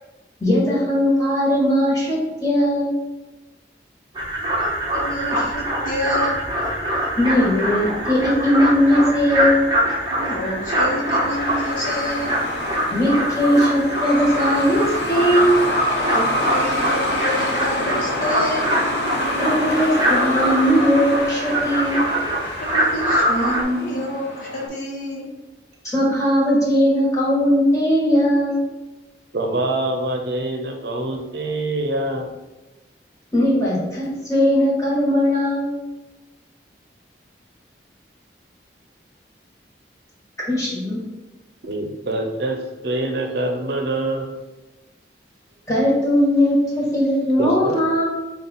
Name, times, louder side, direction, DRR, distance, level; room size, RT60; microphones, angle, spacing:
voice 1, 0.4-2.9 7.2-9.6 12.9-15.6 19.4-22.0 25.9-28.6 33.3-35.7 40.5-41.0 45.7-48.0, equal, 20° left, -6 dB, 1.4 m, -19 dB
sound 1, 4.1-23.6, right 1 dB, 25° right, 0.7 m, -24 dB
voice 2, 4.9-6.4 10.1-12.4 16.1-16.2 16.5-18.7 22.6-25.3, left 1 dB, 45° left, -3 dB, 1.1 m, -28 dB
Truck, 7.2-24.7, left 1 dB, 70° left, 0.9 m, -28 dB
voice 3, 29.3-32.3 41.6-44.3 47.4-47.8, right 2 dB, 65° right, 3 dB, 0.6 m, -25 dB
5.3 x 2.4 x 4.0 m, 1.1 s
head